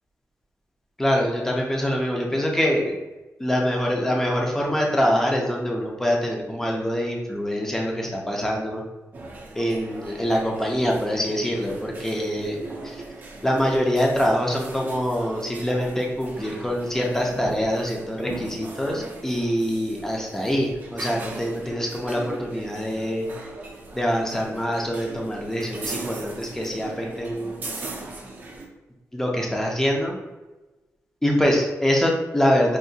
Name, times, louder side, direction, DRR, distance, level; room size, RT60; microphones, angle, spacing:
voice 1, 1.0-3.0 3.4-8.8 9.5-12.6 12.8-13.0 13.4-23.3 23.9-27.6 29.1-30.2 31.2-32.8, equal, 10° left, -1 dB, 0.6 m, -24 dB
sound 1, 9.1-28.7, right 3 dB, 35° right, 0.6 m, -39 dB
4.7 x 2.6 x 2.7 m, 1.1 s
wide cardioid pair, 165°, 6 cm